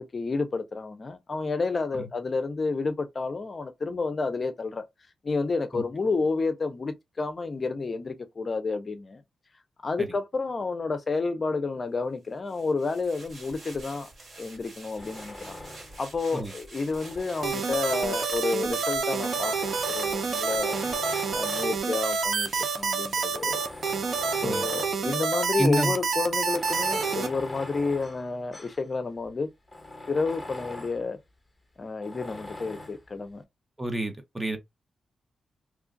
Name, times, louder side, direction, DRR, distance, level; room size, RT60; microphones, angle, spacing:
voice 1, 0.0-4.8 5.2-9.2 9.8-14.1 14.4-15.6 16.0-20.8 21.3-23.6 24.4-29.5 30.1-31.2 31.8-33.4, left 3 dB, 40° left, 0.5 m, -30 dB
sound 1, 12.5-24.1 24.4-24.6, right 2 dB, 40° right, 2.1 m, -47 dB
Tools, 15.0-16.1 16.7-18.4 19.1-22.0 22.7-22.8 23.3-25.1 25.4-25.5 26.4-28.9 29.2-29.3 29.7-31.0 32.0-33.0, left 2 dB, 5° left, 1.2 m, -42 dB
sound 2, 17.4-27.3, right 5 dB, 60° right, 0.7 m, -28 dB
voice 2, 25.6-25.9 33.8-34.6, equal, 15° right, 0.8 m, -28 dB
3.1 x 2.4 x 3.7 m
cardioid pair, 95°, 0 cm